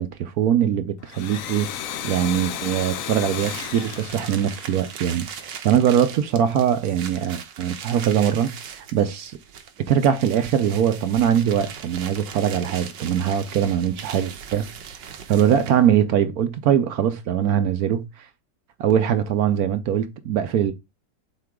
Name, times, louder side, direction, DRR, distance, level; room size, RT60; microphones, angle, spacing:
voice 1, 0.0-1.7 2.0-9.4 9.9-14.7 15.0-18.3 18.8-20.7, right 9 dB, 65° right, 1.0 m, -22 dB
Domestic sounds home sounds, 1.0-5.5, left 9 dB, 65° left, 0.9 m, -34 dB
sound 1, 3.3-15.9, right 7 dB, 85° right, 1.6 m, -39 dB
6.9 x 4.0 x 3.6 m
omnidirectional pair, 1.9 m